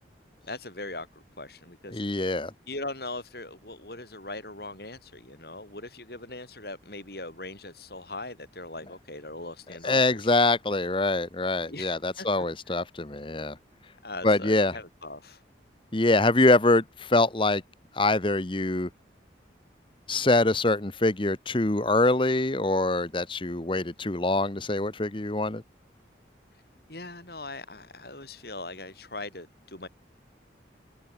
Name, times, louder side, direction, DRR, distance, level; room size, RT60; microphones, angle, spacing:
voice 1, 0.5-10.3 11.7-12.3 12.7-12.8 14.0-15.4 26.5-26.6 26.9-29.9, left 2 dB, 55° left, 7.4 m, -40 dB
voice 2, 1.9-2.5 9.8-13.6 14.2-14.7 15.9-17.6 18.0-18.9 20.1-25.6, left 2 dB, 30° left, 1.1 m, -24 dB
head